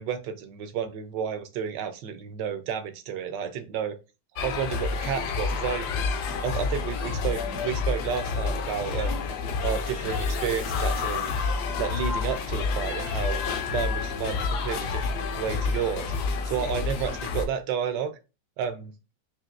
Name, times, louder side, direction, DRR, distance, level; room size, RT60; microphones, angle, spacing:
voice 1, 0.0-4.0 4.4-5.9 6.4-9.3 9.6-11.3 11.8-13.4 13.7-16.1 16.4-18.1 18.6-18.9, right 8 dB, 75° right, 10 dB, 1.3 m, -31 dB
sound 1, 4.4-17.5, left 4 dB, 70° left, 1.2 m, -29 dB
5.6 x 2.6 x 2.5 m, 0.28 s
omnidirectional pair, 1.9 m